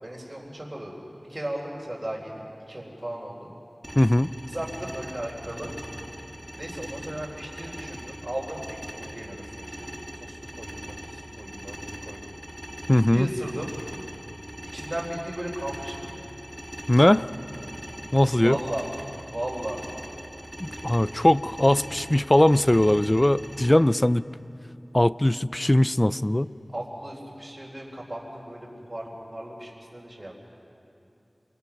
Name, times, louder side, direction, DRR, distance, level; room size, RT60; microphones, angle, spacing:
voice 1, 0.0-1.0 1.3-3.5 4.5-5.7 6.6-9.9 10.2-12.3 13.1-13.7 14.7-16.2 18.4-18.9 19.3-19.8 26.7-30.3, right 1 dB, 40° right, -5 dB, 4.1 m, -36 dB
sound 1, 3.8-23.7, equal, 20° right, 2.6 m, -40 dB
voice 2, 4.0-4.3 12.9-13.3 16.9-17.3 18.1-18.6 20.6-24.2 24.9-26.5, left 1 dB, 25° left, 16 dB, 0.5 m, -20 dB
27.5 x 25.5 x 6.0 m, 2.9 s
wide cardioid pair, 45°, 0 cm